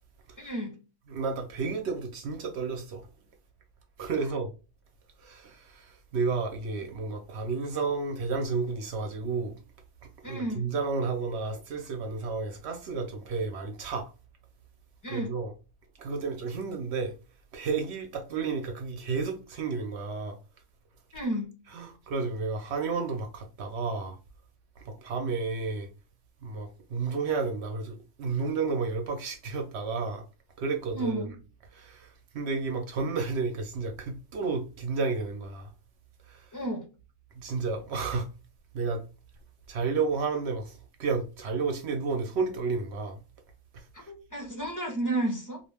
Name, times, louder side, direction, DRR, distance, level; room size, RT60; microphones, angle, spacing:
voice 1, 0.4-0.7 10.2-10.7 15.0-15.3 21.1-21.5 30.9-31.3 36.5-36.8 44.1-45.6, right 1 dB, 25° left, 0.4 m, -32 dB
voice 2, 1.1-3.1 4.0-4.5 5.2-9.5 10.2-14.1 15.1-15.5 16.0-17.1 17.5-20.4 21.7-24.2 24.8-25.9 26.4-30.2 30.6-31.4 31.7-35.7 36.3-36.4 37.4-38.3 38.7-39.0 39.7-43.2 44.0-44.1, right 4 dB, 65° right, 0.7 m, -31 dB
2.4 x 2.2 x 3.2 m
omnidirectional pair, 1.5 m